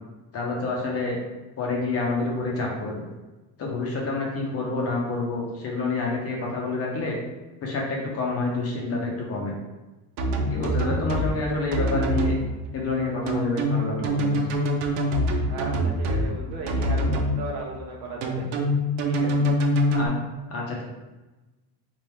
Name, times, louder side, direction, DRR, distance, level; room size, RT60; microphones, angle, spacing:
voice 1, 0.3-1.2 1.6-2.9 3.6-7.2 7.6-9.5 10.4-12.4 12.7-14.5 19.9-20.1 20.5-20.8, left 3 dB, 35° left, -1 dB, 0.7 m, -28 dB
sound 1, 10.2-11.3 11.7-12.4 13.3-16.3 16.7-17.3 18.2-20.1, equal, 90° right, 0.8 m, -24 dB
voice 2, 15.5-18.5 19.0-19.5, right 2 dB, 65° right, -2 dB, 1.2 m, -36 dB
3.5 x 2.5 x 4.4 m, 1.1 s
cardioid pair, 165°, 45 cm